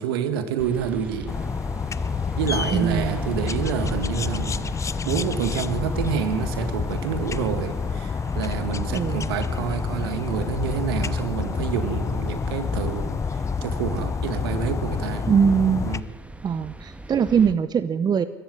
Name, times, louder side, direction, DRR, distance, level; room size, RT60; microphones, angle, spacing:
voice 1, 0.0-1.3 2.4-4.7 5.0-15.3 15.9-16.1, right 8 dB, 75° right, 10 dB, 2.0 m, -28 dB
sound 1, 0.6-17.5, right 1 dB, 10° right, 1.6 m, -40 dB
Wind instrument woodwind instrument, 0.7-10.6, right 3 dB, 55° right, 6.2 m, -55 dB
sound 2, 1.3-16.0, left 5 dB, 25° left, 0.8 m, -28 dB
voice 2, 2.7-3.2 8.9-9.3 15.3-15.9 16.4-18.2, right 7 dB, 35° right, 14 dB, 0.9 m, -21 dB
23.5 x 14.0 x 9.4 m, 1.4 s
hypercardioid pair, 70°, 13 cm